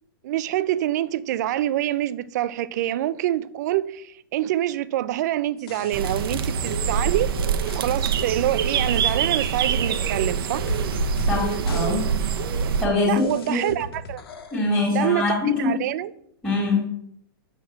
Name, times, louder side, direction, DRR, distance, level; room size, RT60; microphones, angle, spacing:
voice 1, 0.2-7.3 7.6-10.7 13.1-14.2 14.9-16.1, right 13 dB, 45° right, 0.5 m, -26 dB
sound 1, 5.6-7.9 8.2-8.3 8.7-9.1 9.4-9.5 10.2-10.3 10.5-11.4 11.7-11.9 12.2-12.3 12.7-12.8 13.2-14.6, left 2 dB, 75° left, 1.8 m, -34 dB
sound 2, 5.9-12.9, right 7 dB, 65° right, 0.9 m, -25 dB
voice 2, 11.3-12.1 12.8-13.7 14.5-15.8 16.4-17.0, left 3 dB, ahead, 2.0 m, -23 dB
6.5 x 6.1 x 7.2 m
hypercardioid pair, 160°, 13 cm